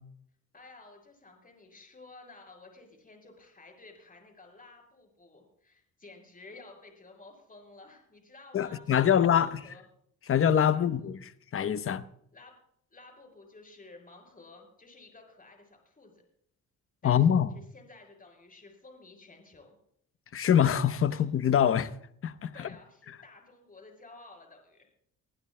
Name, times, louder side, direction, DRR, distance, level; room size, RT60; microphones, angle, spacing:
voice 1, 0.5-9.8 10.7-11.1 12.3-12.5 12.9-16.1 17.0-19.8 21.1-21.2 22.5-24.9, left 3 dB, 30° left, 6.0 m, -53 dB
voice 2, 8.5-9.6 10.3-11.2 11.5-12.1 17.0-17.5 20.3-21.9 22.2-22.5, left 9 dB, 45° left, 0.9 m, -24 dB
23.0 x 15.5 x 2.2 m
cardioid pair, 90°, 30 cm